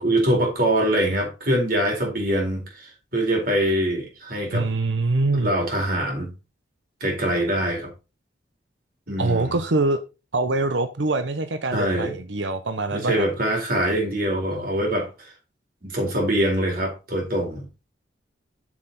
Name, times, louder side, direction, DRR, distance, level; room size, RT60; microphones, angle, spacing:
voice 1, 0.0-4.7 5.4-6.3 7.0-7.9 9.1-9.5 11.7-12.1 12.9-15.1 15.8-17.7, right 1 dB, 55° right, 4.4 m, -23 dB
voice 2, 4.5-5.5 9.2-10.0 10.3-13.3, right 2 dB, 80° right, 0.9 m, -24 dB
7.5 x 7.3 x 4.3 m
head